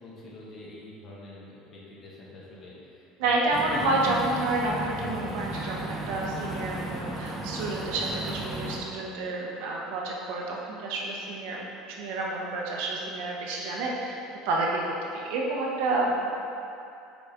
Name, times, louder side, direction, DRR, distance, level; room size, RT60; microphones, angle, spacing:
voice 1, 0.0-4.2, left 2 dB, 40° left, -5 dB, 1.5 m, -45 dB
voice 2, 3.2-14.2 14.4-16.3, right 2 dB, 75° right, -2 dB, 0.9 m, -29 dB
sound 1, 3.5-8.8, right 2 dB, 20° right, 0.9 m, -35 dB
6.2 x 4.2 x 3.6 m, 2.7 s
supercardioid pair, 125°, 0 cm